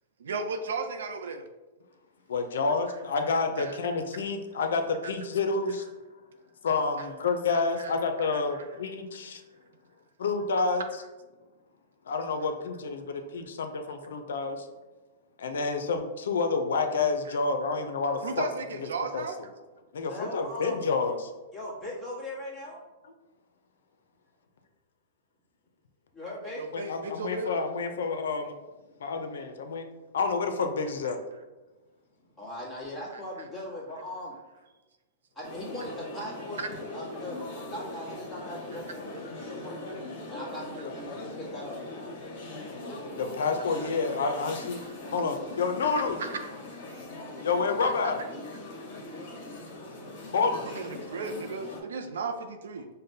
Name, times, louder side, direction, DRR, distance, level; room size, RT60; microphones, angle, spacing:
voice 1, 0.2-1.5 3.6-3.7 7.8-7.9 10.5-10.7 17.3-17.4 18.2-19.4 26.5-27.5 36.6-36.7 43.8-43.9 46.2-46.5 48.0-48.1 50.6-52.9, right 3 dB, 85° right, 6 dB, 0.4 m, -35 dB
voice 2, 2.3-5.9 6.6-9.4 10.2-10.8 12.1-14.7 15.4-18.5 18.8-18.9 19.1-19.2 19.9-21.3 26.7-28.5 29.0-29.9 30.1-31.2 43.2-44.8 45.1-46.2 47.4-48.2 50.3-50.6 50.9-51.0, left 4 dB, 80° left, 6 dB, 0.5 m, -29 dB
voice 3, 20.1-20.8 21.5-22.8 26.1-26.6 32.4-34.3 35.3-39.8 40.3-41.8, left 1 dB, 10° left, -7 dB, 1.2 m, -39 dB
sound 1, 35.4-51.8, left 2 dB, 55° left, 0.9 m, -41 dB
5.0 x 2.1 x 2.7 m, 1.2 s
hypercardioid pair, 135°, 0 cm